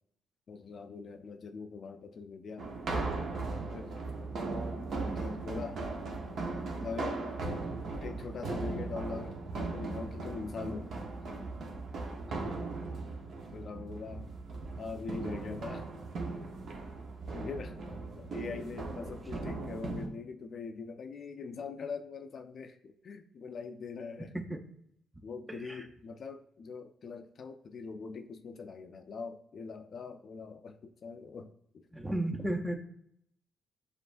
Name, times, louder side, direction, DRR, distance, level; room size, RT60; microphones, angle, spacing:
voice 1, 0.5-2.7 3.7-4.0 5.0-5.8 6.8-7.2 8.0-10.9 13.5-14.3 14.8-15.9 17.3-17.8 18.2-24.3 25.2-31.9, left 5 dB, 50° left, 7 dB, 0.4 m, -42 dB
sound 1, 2.6-20.1, right 3 dB, 65° right, 0.8 m, -38 dB
voice 2, 31.9-32.7, right 1 dB, 10° right, 5 dB, 0.6 m, -33 dB
6.6 x 2.5 x 2.5 m, 0.73 s
cardioid pair, 90°, 0 cm